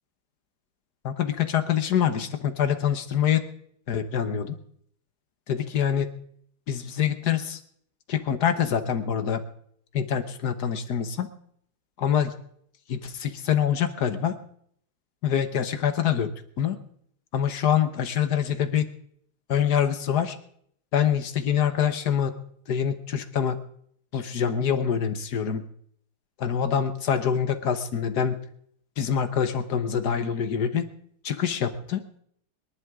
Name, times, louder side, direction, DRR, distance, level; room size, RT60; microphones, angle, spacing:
voice 1, 1.0-3.4 3.9-4.6 5.5-6.1 6.7-7.6 8.1-9.4 9.9-11.3 12.0-12.3 12.9-14.4 15.2-16.3 16.6-16.8 17.3-18.9 19.5-20.4 20.9-22.3 22.7-23.6 24.1-25.6 26.4-28.4 29.0-30.9 31.2-32.0, left 8 dB, 75° left, 9 dB, 1.7 m, -25 dB
25.0 x 11.0 x 3.7 m, 0.64 s
omnidirectional pair, 1.7 m